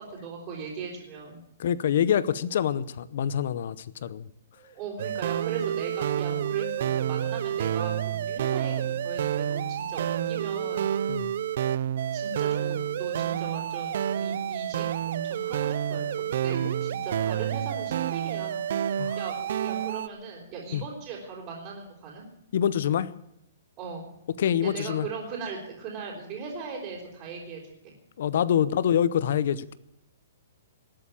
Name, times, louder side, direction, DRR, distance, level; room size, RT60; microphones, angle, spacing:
voice 1, 0.1-1.4 4.0-4.1 4.5-10.9 12.1-18.6 19.2-22.2 23.8-24.1 24.6-27.9, right 5 dB, 25° right, -4 dB, 4.2 m, -38 dB
voice 2, 1.6-4.3 11.1-11.3 19.0-19.2 20.7-20.8 22.5-23.1 24.4-25.1 28.2-29.8, left 9 dB, 55° left, 18 dB, 0.7 m, -26 dB
sound 1, 5.0-20.1, right 10 dB, 55° right, 0.6 m, -29 dB
19.0 x 8.5 x 8.9 m, 0.82 s
hypercardioid pair, 170°, 0 cm